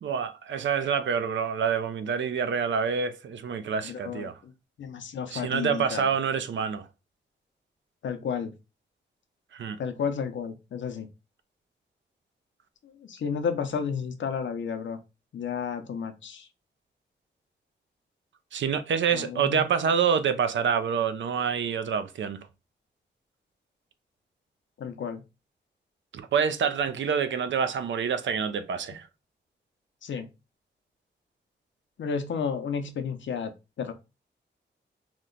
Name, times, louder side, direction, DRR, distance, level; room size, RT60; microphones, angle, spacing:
voice 1, 0.0-4.4 5.3-6.9 9.5-9.8 18.5-22.4 26.1-29.1, right 7 dB, 75° right, 0.5 m, -27 dB
voice 2, 3.8-4.5 4.8-6.1 8.0-8.5 9.8-11.1 12.8-15.0 15.3-16.5 19.1-19.6 24.8-25.2 30.0-30.3 32.0-33.5 33.8-33.9, left 6 dB, 80° left, 0.6 m, -32 dB
2.9 x 2.1 x 3.7 m
cardioid pair, 65°, 19 cm